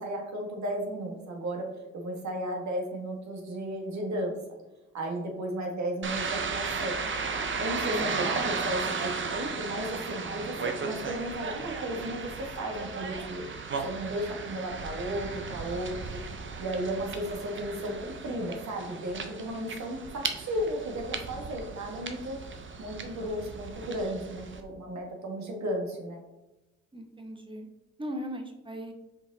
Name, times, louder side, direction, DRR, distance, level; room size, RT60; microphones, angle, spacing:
voice 1, 0.0-1.7 1.9-4.4 4.9-7.0 7.6-12.3 12.6-13.4 13.8-16.2 16.6-22.4 22.8-26.2, right 1 dB, 65° right, 1 dB, 2.0 m, -34 dB
sound 1, 6.0-24.6, right 5 dB, 40° right, 0.9 m, -35 dB
voice 2, 7.9-8.3 26.9-27.7 28.0-28.9, equal, 15° right, 4 dB, 1.2 m, -38 dB
5.9 x 5.2 x 4.1 m, 1.0 s
cardioid pair, 90°, 30 cm